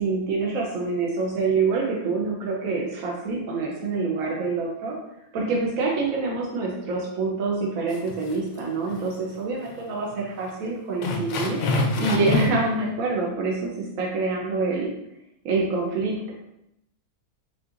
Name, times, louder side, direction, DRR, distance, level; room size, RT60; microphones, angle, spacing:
voice 1, 0.0-4.9 5.3-11.6 12.0-13.7 14.0-14.9 15.4-16.3, right 3 dB, 65° right, -3 dB, 1.2 m, -26 dB
sound 1, 7.9-8.6 8.9-9.1 9.7-9.8 10.1-10.2 11.0-12.7, left 2 dB, 70° left, 0.9 m, -26 dB
5.7 x 2.9 x 2.5 m, 0.80 s
omnidirectional pair, 1.6 m